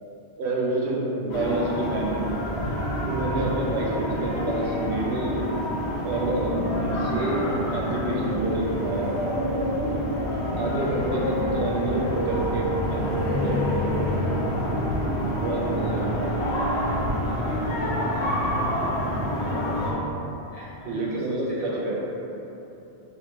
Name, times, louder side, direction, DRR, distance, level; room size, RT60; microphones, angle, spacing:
voice 1, 0.4-2.4 3.1-5.4 6.0-9.1 10.5-14.1 15.1-16.7 20.8-22.0, right 2 dB, 75° right, -2 dB, 0.9 m, -28 dB
sound 1, 1.3-19.9, equal, 75° left, 0.9 m, -27 dB
voice 2, 20.5-22.0, left 1 dB, 50° left, -8 dB, 0.4 m, -43 dB
3.9 x 3.2 x 2.8 m, 3.0 s
omnidirectional pair, 1.1 m